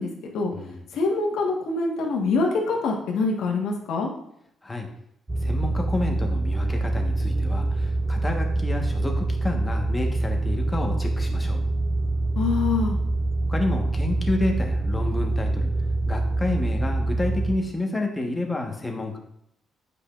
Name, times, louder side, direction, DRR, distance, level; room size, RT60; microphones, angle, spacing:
voice 1, 0.0-0.5 0.9-4.1 12.4-13.0, left 3 dB, 80° left, 0 dB, 1.3 m, -25 dB
voice 2, 0.5-0.8 4.6-4.9 5.4-11.6 13.5-15.7 16.1-19.2, left 2 dB, 15° left, 2 dB, 1.2 m, -29 dB
sound 1, 5.3-17.6, right 2 dB, 20° right, 0.5 m, -25 dB
8.2 x 5.2 x 2.4 m, 0.74 s
cardioid pair, 90°, 0 cm